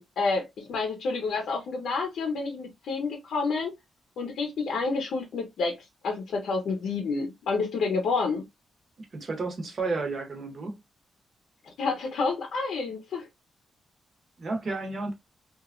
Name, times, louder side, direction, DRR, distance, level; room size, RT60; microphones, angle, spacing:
voice 1, 0.0-3.7 4.2-5.8 6.0-8.4 11.6-13.3, left 4 dB, 75° left, 0.6 m, -29 dB
voice 2, 9.0-10.8 14.4-15.1, right 3 dB, 35° right, 0.8 m, -32 dB
2.9 x 2.3 x 2.3 m
wide cardioid pair, 175°, 0 cm